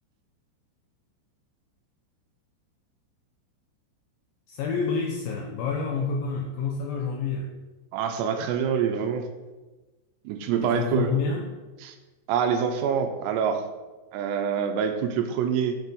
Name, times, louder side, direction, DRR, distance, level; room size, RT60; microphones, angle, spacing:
voice 1, 4.5-7.5 10.6-11.5, left 5 dB, 85° left, 0 dB, 2.1 m, -28 dB
voice 2, 7.9-9.3 10.3-11.2 11.8-11.9 12.3-13.7 14.1-15.8, right 7 dB, 85° right, 6 dB, 2.7 m, -26 dB
8.2 x 6.0 x 5.2 m, 1.2 s
omnidirectional pair, 5.2 m